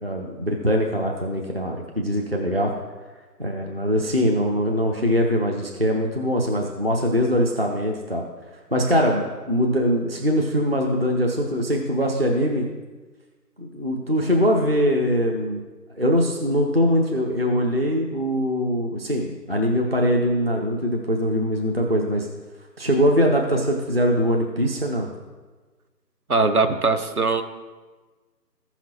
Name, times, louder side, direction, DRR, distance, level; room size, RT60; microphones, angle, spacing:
voice 1, 0.0-2.7 3.4-8.2 8.7-12.7 13.6-15.6 15.9-22.3 22.8-25.1, equal, 40° right, 0 dB, 0.6 m, -22 dB
voice 2, 26.3-27.4, right 3 dB, 60° right, 8 dB, 0.9 m, -20 dB
15.0 x 5.8 x 2.9 m, 1.3 s
figure-of-eight pair, 170°, 49 cm